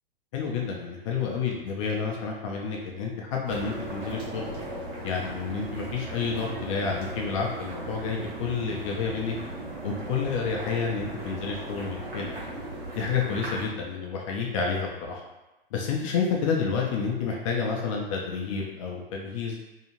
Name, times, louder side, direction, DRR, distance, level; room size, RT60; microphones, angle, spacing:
voice 1, 0.3-4.5 5.0-9.4 9.8-12.4 12.9-15.2 15.7-19.6, left 5 dB, 35° left, -1 dB, 0.4 m, -29 dB
sound 1, 3.5-13.7, right 2 dB, 85° right, 1.2 m, -37 dB
2.7 x 2.3 x 2.9 m, 1.0 s
figure-of-eight pair, 110°, 30 cm